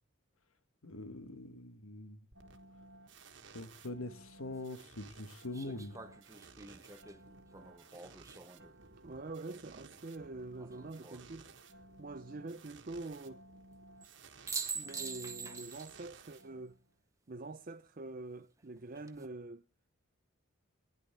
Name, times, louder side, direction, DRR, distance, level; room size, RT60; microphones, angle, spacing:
voice 1, 0.8-2.2 3.5-6.0, left 2 dB, 80° left, 1.5 m, -43 dB
sound 1, 2.3-17.0, right 3 dB, 60° right, 1.5 m, -56 dB
sound 2, 4.1-4.2 5.5-8.8 10.6-11.2 14.0-14.1 14.5-16.0 16.3-16.4 18.8-19.3, right 5 dB, 15° right, 0.9 m, -44 dB
voice 2, 9.0-13.4 14.7-16.7 17.3-19.6, right 2 dB, 40° right, 0.6 m, -45 dB
19.0 x 10.5 x 3.4 m
head